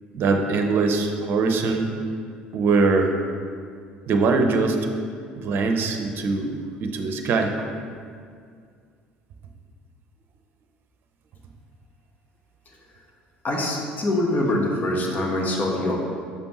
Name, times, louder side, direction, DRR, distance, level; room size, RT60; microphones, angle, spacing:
voice 1, 0.1-1.9 2.5-3.1 4.1-4.8 5.4-7.7, right 4 dB, 50° right, 4 dB, 0.7 m, -22 dB
voice 2, 13.4-16.0, left 1 dB, 40° left, 0 dB, 1.2 m, -24 dB
6.8 x 5.2 x 3.1 m, 2.2 s
hypercardioid pair, 65°, 5 cm